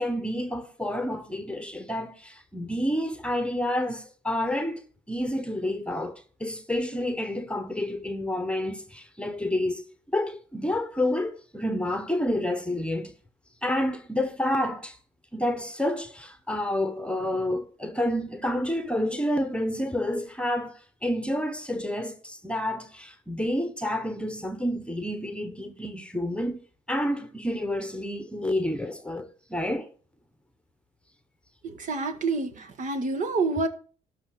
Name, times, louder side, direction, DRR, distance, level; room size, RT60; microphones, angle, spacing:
voice 1, 0.0-4.8 5.1-13.1 13.6-15.0 15.3-26.6 26.9-29.9, left 1 dB, 5° left, 1.2 m, -29 dB
voice 2, 31.6-33.7, right 3 dB, 50° right, 1.8 m, -28 dB
12.5 x 5.7 x 6.4 m
cardioid pair, 110°, 17 cm